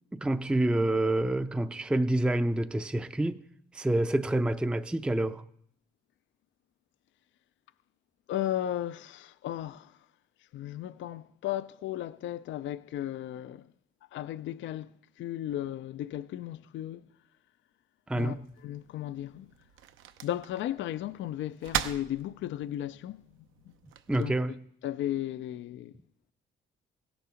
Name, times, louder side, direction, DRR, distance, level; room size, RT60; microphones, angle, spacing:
voice 1, 0.1-3.4 3.7-5.4 18.1-18.4 24.1-24.5, right 1 dB, 5° right, 0.5 m, -27 dB
voice 2, 8.3-10.0 10.5-13.7 14.1-17.0 18.1-19.5 20.2-23.2 24.1-24.3 24.8-26.0, left 12 dB, 70° left, 0.4 m, -35 dB
sound 1, 18.2-24.2, right 10 dB, 80° right, 0.7 m, -41 dB
17.0 x 7.0 x 5.0 m
cardioid pair, 90°, 20 cm